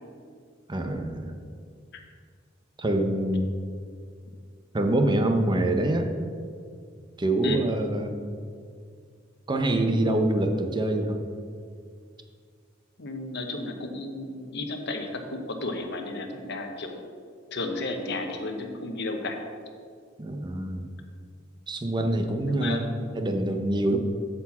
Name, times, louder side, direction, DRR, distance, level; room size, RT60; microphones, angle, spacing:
voice 1, 0.7-1.3 2.8-3.5 4.7-6.1 7.2-8.1 9.5-11.2 20.2-20.9 21.7-22.9 23.1-24.0, right 1 dB, 25° right, 5 dB, 0.7 m, -25 dB
voice 2, 13.0-17.0 17.5-19.4 22.5-23.2, left 2 dB, 60° left, 4 dB, 0.9 m, -33 dB
8.4 x 4.5 x 7.2 m, 2.1 s
head